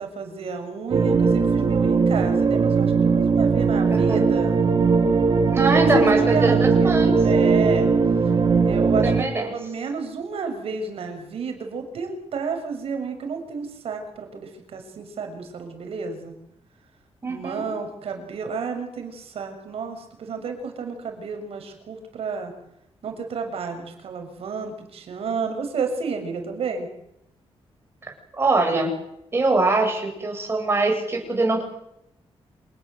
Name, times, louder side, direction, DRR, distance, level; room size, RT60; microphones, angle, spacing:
voice 1, 0.0-4.6 5.7-7.9 8.6-9.1 9.4-16.3 17.3-22.5 23.0-26.9, right 5 dB, 70° right, 5 dB, 6.7 m, -31 dB
sound 1, 0.9-9.2, right 5 dB, 45° right, 3.4 m, -19 dB
voice 2, 3.9-4.2 5.5-7.2 9.0-9.5 17.2-17.7 28.4-28.9 29.3-31.6, right 2 dB, 25° right, 2 dB, 7.8 m, -22 dB
27.5 x 19.5 x 8.3 m, 0.79 s
wide cardioid pair, 150°, 10 cm